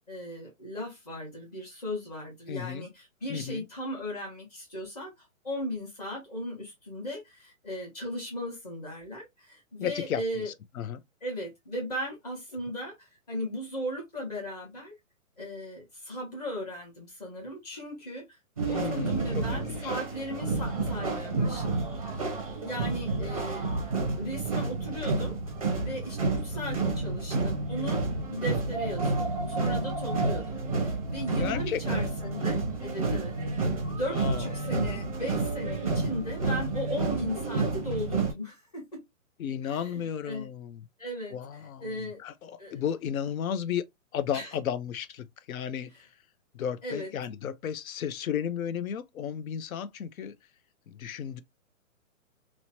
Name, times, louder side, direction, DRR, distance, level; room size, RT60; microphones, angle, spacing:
voice 1, 0.1-10.5 11.2-14.9 15.4-18.4 18.7-21.7 22.6-23.7 24.1-25.4 25.8-28.0 28.3-39.0 39.6-40.5 41.0-42.2 42.6-42.8 44.3-44.5 46.8-47.1, equal, 30° left, 1.0 m, -37 dB
voice 2, 2.5-2.9 3.3-3.6 9.8-11.0 18.6-19.3 19.5-19.9 26.7-26.9 31.4-32.0 34.1-34.5 39.4-40.8 41.3-43.8 44.1-46.1 46.5-50.3 50.9-51.4, left 8 dB, 85° left, 0.5 m, -34 dB
sound 1, 18.6-38.3, right 3 dB, 25° right, 0.5 m, -30 dB
2.9 x 2.0 x 2.7 m
hypercardioid pair, 175°, 41 cm